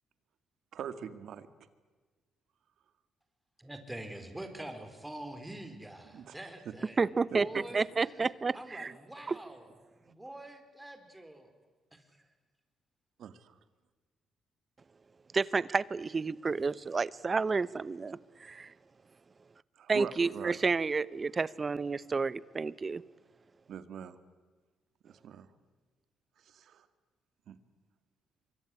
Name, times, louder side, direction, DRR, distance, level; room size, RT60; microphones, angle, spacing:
voice 1, 0.7-1.5 6.1-6.4 7.3-7.6 13.2-13.6 19.7-20.6 23.7-24.2 25.0-25.5 26.4-26.9 27.5-27.6, right 8 dB, 70° right, 12 dB, 2.0 m, -43 dB
voice 2, 3.6-7.0 7.3-7.8 8.1-8.3 8.5-9.7 10.0-11.5 11.9-12.1, right 1 dB, 10° right, 7 dB, 4.5 m, -45 dB
voice 3, 7.0-7.5 7.7-8.9 9.3-9.4 15.3-18.7 19.9-23.0, right 4 dB, 30° right, 20 dB, 0.8 m, -30 dB
25.0 x 23.5 x 9.9 m, 1.4 s
cardioid pair, 90°, 0 cm